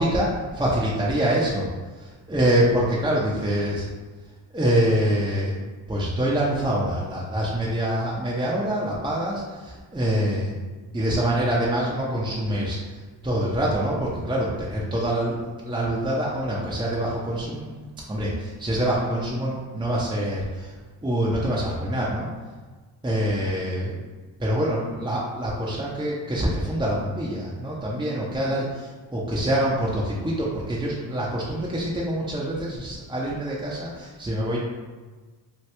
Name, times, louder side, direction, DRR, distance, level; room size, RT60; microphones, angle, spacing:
voice 1, 0.0-1.7 2.3-3.9 4.5-5.6 5.9-10.6 10.9-17.7 18.1-20.7 21.0-22.3 23.0-24.0 24.4-34.6, right 1 dB, 10° right, -6 dB, 0.6 m, -25 dB
3.0 x 2.2 x 3.3 m, 1.4 s
supercardioid pair, 50°, 49 cm